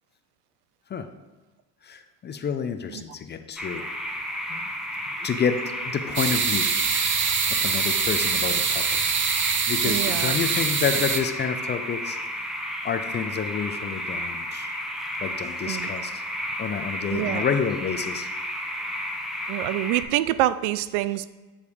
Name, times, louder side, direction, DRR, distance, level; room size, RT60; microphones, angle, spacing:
voice 1, 1.8-3.9 4.5-4.6 5.2-7.2 7.5-9.0 9.7-12.2 12.8-14.8 15.2-16.2 16.6-18.3, left 6 dB, 25° left, 8 dB, 0.5 m, -29 dB
sound 1, 3.6-20.0, equal, ahead, 0.9 m, -32 dB
sound 2, 6.2-11.2, right 6 dB, 25° right, 0.7 m, -24 dB
voice 2, 9.8-10.3 15.7-15.9 17.1-17.4 19.5-21.3, right 15 dB, 70° right, 15 dB, 0.5 m, -26 dB
9.4 x 3.3 x 4.9 m, 1.3 s
hypercardioid pair, 85°, 47 cm